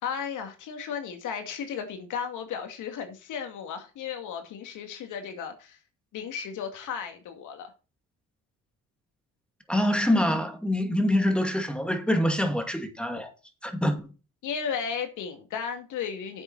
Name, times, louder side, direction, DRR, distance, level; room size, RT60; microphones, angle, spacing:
voice 1, 0.0-5.8 6.1-7.7 14.4-16.4, left 7 dB, 85° left, 2.4 m, -34 dB
voice 2, 9.7-13.3 13.6-14.1, left 1 dB, 5° left, 2.3 m, -25 dB
9.8 x 8.0 x 4.2 m
cardioid pair, 90°, 30 cm